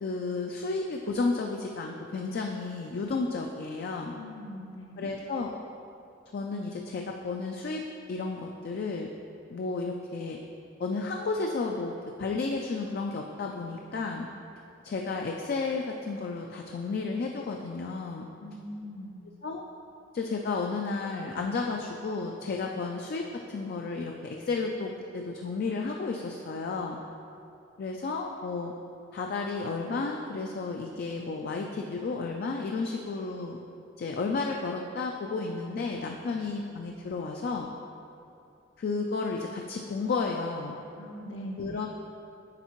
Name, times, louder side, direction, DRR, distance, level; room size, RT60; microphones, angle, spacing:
voice 1, 0.0-4.1 5.0-5.5 6.3-7.8 8.1-9.1 9.5-10.4 10.8-14.3 14.8-18.3 19.4-19.6 20.1-27.0 27.8-28.7 29.1-33.6 34.0-37.7 38.8-40.8 41.6-41.9, left 4 dB, 55° left, 1 dB, 0.3 m, -32 dB
voice 2, 4.1-5.1 18.4-19.2 41.0-41.8, equal, 85° left, 0 dB, 0.8 m, -41 dB
9.8 x 3.6 x 3.0 m, 2.8 s
head